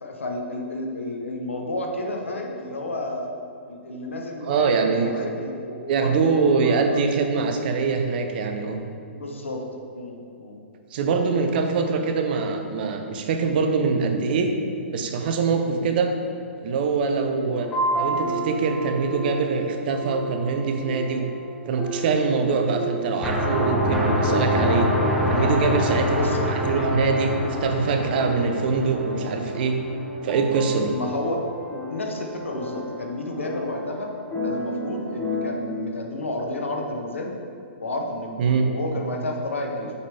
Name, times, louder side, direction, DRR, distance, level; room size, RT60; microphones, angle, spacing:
voice 1, 0.0-3.3 3.7-7.0 9.1-9.7 9.9-10.6 11.9-12.0 15.6-15.9 17.4-17.6 26.1-26.5 30.9-31.4 31.9-34.1 34.4-37.3 37.8-39.9, left 2 dB, 85° left, 2 dB, 1.0 m, -31 dB
voice 2, 4.5-5.1 5.9-8.8 10.9-14.5 14.9-16.1 16.6-17.7 18.0-21.3 21.7-24.9 25.3-29.8 30.2-30.9 38.4-38.7, right 4 dB, 50° right, 5 dB, 0.7 m, -23 dB
sound 1, 17.5-35.6, right 1 dB, 15° left, 1.1 m, -32 dB
sound 2, 23.2-29.9, equal, 5° right, 0.9 m, -24 dB
6.4 x 5.1 x 3.4 m, 2.5 s
hypercardioid pair, 125°, 7 cm